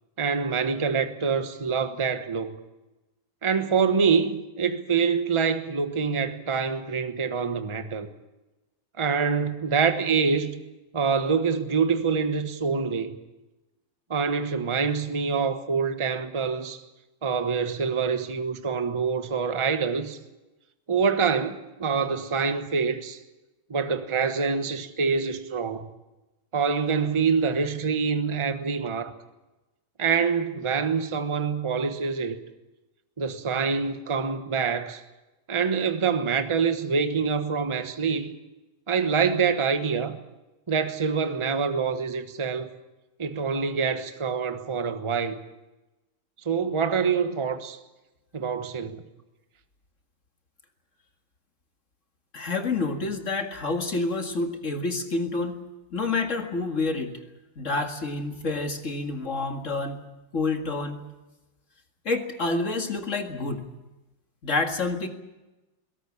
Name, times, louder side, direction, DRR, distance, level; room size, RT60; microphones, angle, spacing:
voice 1, 0.2-2.5 3.4-8.1 9.0-10.6 10.9-13.2 14.1-16.8 17.2-20.2 20.9-23.2 23.7-25.9 26.5-29.1 30.0-32.4 33.2-35.0 35.5-38.3 38.9-40.2 40.7-42.7 43.2-45.4 46.4-47.8 48.3-49.0, right 5 dB, 20° right, 1.0 m, -25 dB
voice 2, 52.3-55.6 55.9-57.2 57.6-60.0 60.3-61.0 62.1-63.7 64.4-65.1, left 3 dB, 40° left, 2.2 m, -28 dB
22.0 x 17.5 x 8.6 m
omnidirectional pair, 2.2 m